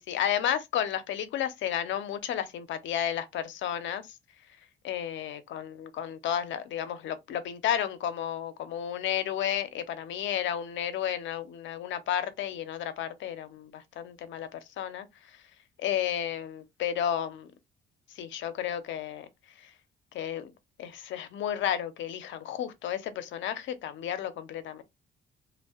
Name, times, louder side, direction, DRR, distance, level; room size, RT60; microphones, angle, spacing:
voice 1, 0.0-4.0 4.8-15.1 15.8-17.5 18.2-19.3 20.1-20.5 20.8-24.8, left 10 dB, 75° left, 0.5 m, -32 dB
2.5 x 2.1 x 2.3 m
cardioid pair, 90°, 20 cm